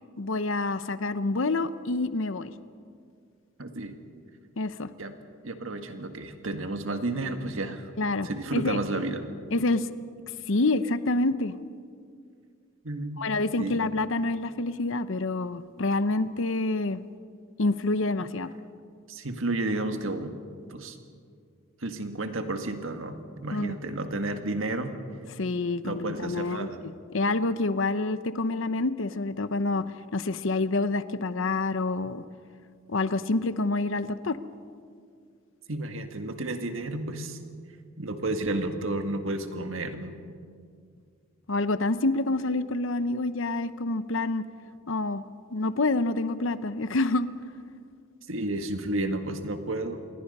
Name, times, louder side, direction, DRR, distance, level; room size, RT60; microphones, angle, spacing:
voice 1, 0.2-2.5 4.6-4.9 8.0-8.8 9.5-9.9 10.5-11.6 13.2-17.0 17.6-18.5 23.5-23.7 25.4-29.9 30.1-32.2 32.9-34.4 41.5-44.4 44.9-45.2 45.5-47.3, left 2 dB, 60° left, 13 dB, 0.8 m, -27 dB
voice 2, 3.6-4.0 5.0-5.2 5.4-7.9 8.2-9.3 12.8-13.3 13.6-13.8 19.1-20.3 20.7-21.0 21.8-24.9 25.8-26.8 35.7-37.4 38.0-40.2 48.3-50.0, right 2 dB, 65° right, 6 dB, 1.8 m, -31 dB
27.5 x 22.5 x 5.5 m, 2.2 s
head